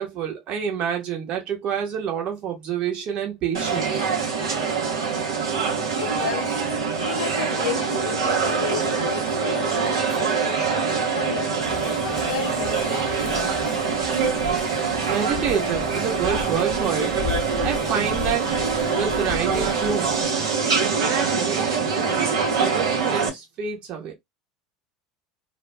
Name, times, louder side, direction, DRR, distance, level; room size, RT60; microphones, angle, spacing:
voice 1, 0.0-4.1 15.0-17.1 17.6-18.5 18.9-20.1 21.0-24.1, right 7 dB, 50° right, 1.0 m, -28 dB
sound 1, 3.5-23.3, right 5 dB, 75° right, 0.8 m, -24 dB
voice 2, 6.0-6.6 7.0-13.3, left 8 dB, 85° left, 0.3 m, -33 dB
sound 2, 11.6-20.3, left 7 dB, 35° left, 0.6 m, -36 dB
2.3 x 2.1 x 3.3 m
hypercardioid pair, 75°, 2 cm